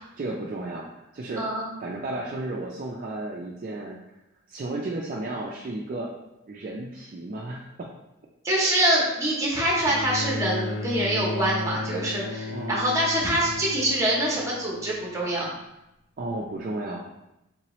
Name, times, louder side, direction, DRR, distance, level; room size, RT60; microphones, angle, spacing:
voice 1, 0.2-1.5 1.8-4.2 4.5-6.1 6.5-7.9 12.5-12.8 16.2-17.0, right 2 dB, 40° right, -3 dB, 0.3 m, -33 dB
voice 2, 8.4-15.5, right 1 dB, 15° right, -4 dB, 0.8 m, -25 dB
Bowed string instrument, 9.8-15.3 16.4-16.5, left 3 dB, 85° left, 0.4 m, -34 dB
3.7 x 2.9 x 3.0 m, 0.91 s
head